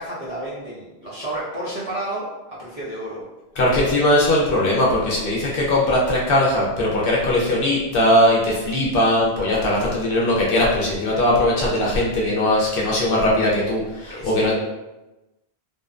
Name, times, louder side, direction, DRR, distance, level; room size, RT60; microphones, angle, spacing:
voice 1, 0.0-3.2 9.5-9.9 14.1-14.5, right 1 dB, 40° right, -8 dB, 0.7 m, -31 dB
voice 2, 3.6-14.5, left 1 dB, 65° left, -4 dB, 0.8 m, -19 dB
2.7 x 2.1 x 2.4 m, 1.0 s
omnidirectional pair, 1.1 m